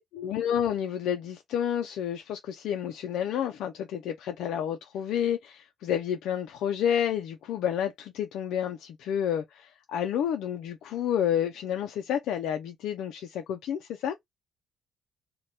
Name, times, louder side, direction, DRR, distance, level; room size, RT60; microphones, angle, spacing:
voice 1, 0.1-14.1, left 9 dB, 85° left, 0.3 m, -30 dB
2.6 x 2.1 x 3.2 m
cardioid pair, 90°, 0 cm